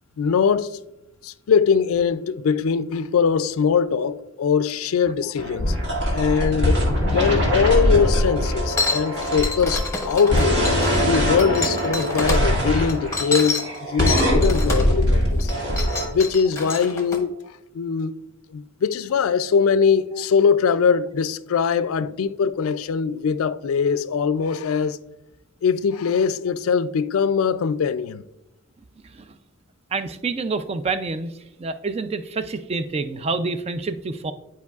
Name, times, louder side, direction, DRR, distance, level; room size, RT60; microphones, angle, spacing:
voice 1, 0.2-0.8 1.2-5.8 6.1-10.7 11.0-15.5 16.1-17.3 17.7-18.2 18.5-25.0 25.6-28.2, left 6 dB, 80° left, 0.4 m, -22 dB
sound 1, 5.4-16.1, equal, 55° right, 1.8 m, -22 dB
Wind instrument woodwind instrument, 7.3-11.6, left 6 dB, 5° right, 2.0 m, -39 dB
sound 2, 8.7-12.4 12.9-14.9 15.4-17.2, left 3 dB, 15° left, 0.9 m, -28 dB
voice 2, 29.0-29.4 29.9-31.3 31.6-34.3, right 3 dB, 30° right, 0.3 m, -27 dB
10.5 x 4.6 x 2.4 m
head